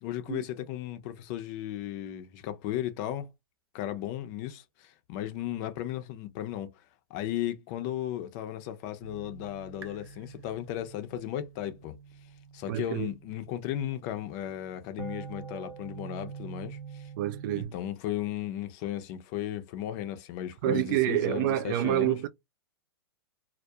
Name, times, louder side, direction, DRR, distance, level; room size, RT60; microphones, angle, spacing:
voice 1, 0.0-3.3 3.7-6.7 7.1-11.9 12.5-17.1 17.5-22.2, left 12 dB, 40° left, 0.6 m, -35 dB
sound 1, 9.0-17.6, right 6 dB, 80° right, 0.7 m, -46 dB
voice 2, 12.7-13.1 17.2-17.7 20.6-22.3, right 13 dB, 50° right, 0.4 m, -27 dB
2.3 x 2.1 x 2.7 m
hypercardioid pair, 120°, 13 cm